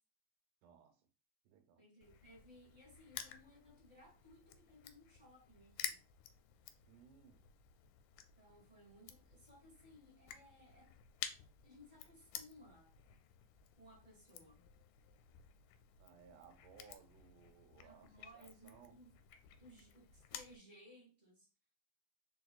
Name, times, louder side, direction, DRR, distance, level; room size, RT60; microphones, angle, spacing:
voice 1, 0.6-1.0 1.4-1.8 6.9-7.5 16.0-19.0, right 7 dB, 75° right, 2.3 m, -62 dB
voice 2, 1.8-6.0 8.4-10.9 11.6-12.9 13.8-14.6 17.8-19.1 19.6-21.5, equal, 20° right, 1.4 m, -61 dB
Crushing, 2.0-20.6, left 10 dB, 80° left, 2.0 m, -53 dB
4.8 x 4.2 x 2.2 m
omnidirectional pair, 3.9 m